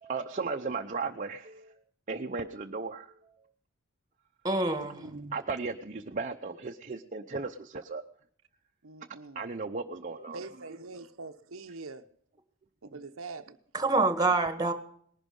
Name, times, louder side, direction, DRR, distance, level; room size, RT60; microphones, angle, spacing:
voice 1, 0.0-1.7 2.1-3.2 5.0-8.0 9.3-10.4, right 4 dB, 40° right, 0.8 m, -36 dB
voice 2, 4.4-5.1 13.7-14.7, right 3 dB, 20° right, 1.7 m, -26 dB
voice 3, 8.8-9.5 10.3-12.1 12.8-13.6, right 3 dB, 70° right, 0.9 m, -44 dB
19.5 x 11.5 x 5.4 m
head